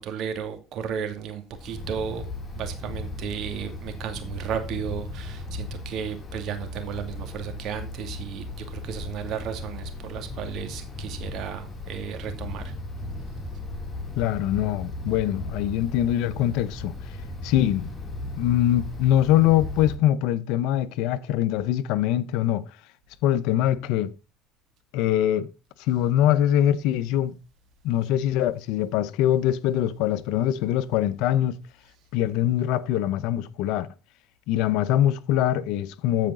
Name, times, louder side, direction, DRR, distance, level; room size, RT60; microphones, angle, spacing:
voice 1, 0.0-12.7, right 8 dB, 60° right, 2.3 m, -34 dB
Wind, 1.5-19.9, left 2 dB, 25° left, 2.9 m, -36 dB
voice 2, 14.2-16.9 17.4-17.9 18.4-22.6 23.2-24.1 24.9-25.5 25.9-27.3 27.8-31.6 32.1-33.9 34.5-36.3, left 12 dB, 75° left, 0.7 m, -23 dB
15.0 x 5.0 x 3.8 m
supercardioid pair, 90°, 0 cm